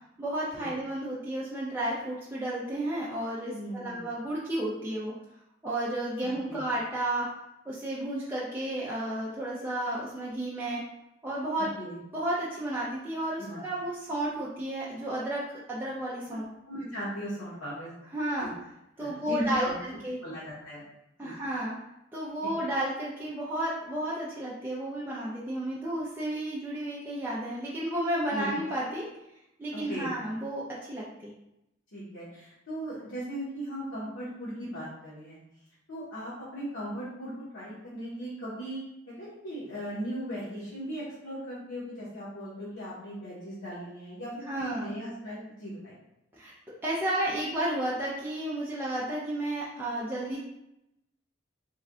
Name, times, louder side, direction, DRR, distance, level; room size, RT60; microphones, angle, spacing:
voice 1, 0.2-5.1 5.6-7.3 7.7-10.8 11.2-11.7 12.1-15.4 15.7-16.4 18.1-18.5 19.0-20.2 21.2-21.7 22.1-29.0 29.6-31.3 44.5-44.9 46.3-46.5 46.8-50.4, right 1 dB, 10° right, -7 dB, 0.4 m, -32 dB
voice 2, 3.5-4.1 6.2-6.6 11.8-12.0 13.4-13.6 16.6-17.9 18.4-18.6 19.0-19.8 20.2-20.8 21.2-21.4 22.4-22.5 26.2-26.3 28.3-28.5 29.7-30.1 31.9-35.4 35.9-38.8 39.2-46.0, equal, 85° left, -9 dB, 1.0 m, -38 dB
3.2 x 2.2 x 3.7 m, 0.86 s
head